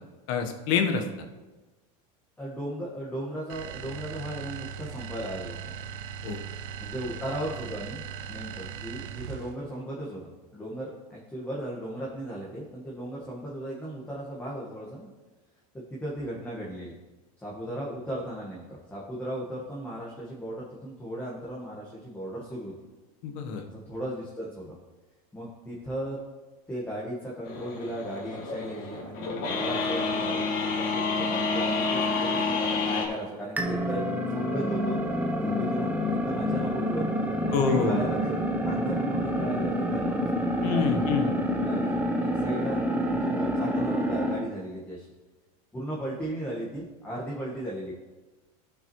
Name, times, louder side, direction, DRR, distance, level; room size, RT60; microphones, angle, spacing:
voice 1, 0.3-1.0 6.2-6.4 23.2-23.6 37.5-38.0 40.6-41.3, left 6 dB, 65° left, 5 dB, 1.2 m, -26 dB
voice 2, 2.4-5.6 6.8-15.1 15.7-16.9 17.4-22.7 23.6-24.8 25.3-26.2 26.7-35.0 35.4-37.0 37.5-41.4 41.6-45.1 45.7-47.9, right 1 dB, 10° left, -5 dB, 1.5 m, -36 dB
sound 1, 3.5-9.6, right 8 dB, 60° right, 0.6 m, -39 dB
sound 2, 27.5-33.1, left 4 dB, 45° left, 1.9 m, -29 dB
sound 3, 33.6-44.5, equal, 10° right, 0.9 m, -28 dB
13.5 x 5.9 x 3.1 m, 1.2 s
supercardioid pair, 130°, 20 cm